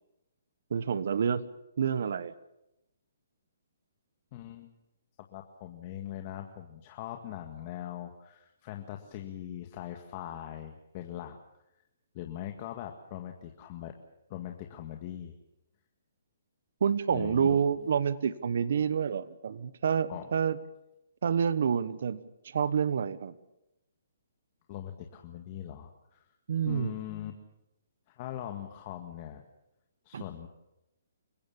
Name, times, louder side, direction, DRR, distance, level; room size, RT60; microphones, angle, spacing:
voice 1, 0.7-1.4 1.8-2.3 16.8-20.6 21.2-23.3 26.5-27.0 30.1-30.2, right 7 dB, 65° right, 16 dB, 1.2 m, -28 dB
voice 2, 4.3-4.7 5.3-11.4 12.1-13.9 14.3-15.3 17.1-17.6 20.1-20.3 24.7-26.3 26.6-27.3 28.1-29.4 30.1-30.5, left 12 dB, 35° left, 4 dB, 1.9 m, -41 dB
29.0 x 16.5 x 7.3 m, 0.89 s
hypercardioid pair, 155°, 0 cm